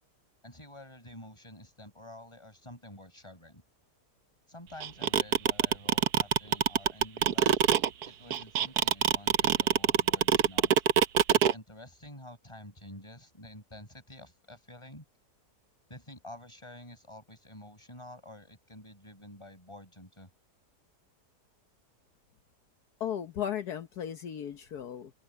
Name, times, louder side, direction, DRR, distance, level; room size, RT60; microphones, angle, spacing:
voice 1, 0.4-3.6 4.5-7.6 8.1-10.7 11.3-15.0 15.9-20.3, left 1 dB, 15° left, 7.6 m, -49 dB
sound 1, 4.8-11.5, right 9 dB, 75° right, 1.3 m, -23 dB
voice 2, 23.0-25.1, left 9 dB, 70° left, 1.5 m, -35 dB
open air
omnidirectional pair, 1.8 m